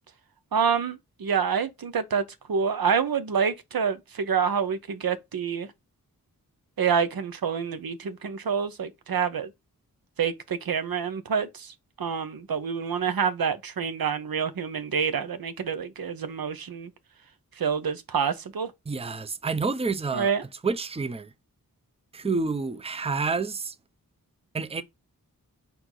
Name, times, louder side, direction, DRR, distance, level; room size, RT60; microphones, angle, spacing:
voice 1, 0.5-5.7 6.8-9.5 10.2-16.9 17.6-18.7 20.1-20.4, right 6 dB, 75° right, 0.8 m, -27 dB
voice 2, 18.9-20.3 20.6-21.3 22.1-23.7 24.5-24.8, right 4 dB, 15° right, 0.6 m, -28 dB
4.5 x 2.7 x 3.7 m
wide cardioid pair, 65°, 35 cm